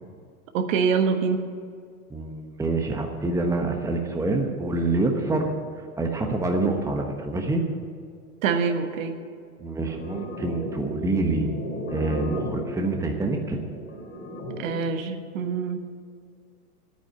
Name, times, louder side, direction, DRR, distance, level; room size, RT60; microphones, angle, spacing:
voice 1, 0.5-1.4 8.4-9.2 14.6-15.8, right 5 dB, 60° right, 7 dB, 1.4 m, -25 dB
voice 2, 2.1-5.5 6.0-7.6 9.6-11.5 11.9-13.6, right 2 dB, 5° right, 3 dB, 1.1 m, -26 dB
sound 1, 9.9-14.9, equal, 25° left, 4.2 m, -35 dB
10.5 x 9.2 x 9.6 m, 2.1 s
hypercardioid pair, 115°, 45 cm